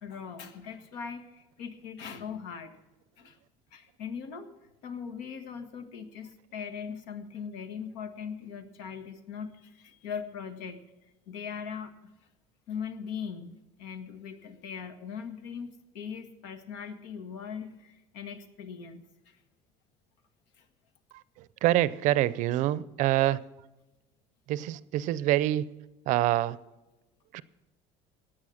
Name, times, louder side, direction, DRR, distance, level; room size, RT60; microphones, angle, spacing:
voice 1, 0.0-2.7 3.2-3.4 3.7-4.5 4.8-10.8 11.3-11.9 12.7-19.4 20.6-20.7, left 6 dB, 90° left, 1.6 m, -40 dB
voice 2, 21.6-23.4 24.5-25.6 26.1-26.6 27.3-27.4, right 14 dB, 60° right, 0.5 m, -25 dB
15.0 x 9.2 x 6.4 m
cardioid pair, 140°, 14 cm